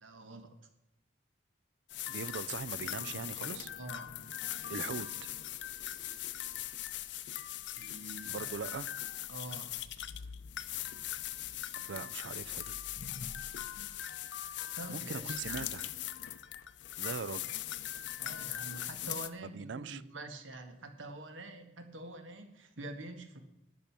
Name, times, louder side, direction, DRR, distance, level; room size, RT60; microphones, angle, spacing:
voice 1, 0.0-0.6 3.8-4.2 7.7-8.5 9.3-9.8 14.7-15.7 18.2-23.4, right 2 dB, 90° right, 1.8 m, -46 dB
sound 1, 1.9-19.3, left 12 dB, 70° left, 0.6 m, -40 dB
voice 2, 2.1-3.7 4.7-5.1 8.3-8.9 11.8-12.8 14.9-15.9 17.0-17.5 19.5-20.0, right 5 dB, 70° right, 0.5 m, -40 dB
12.0 x 8.7 x 6.0 m
head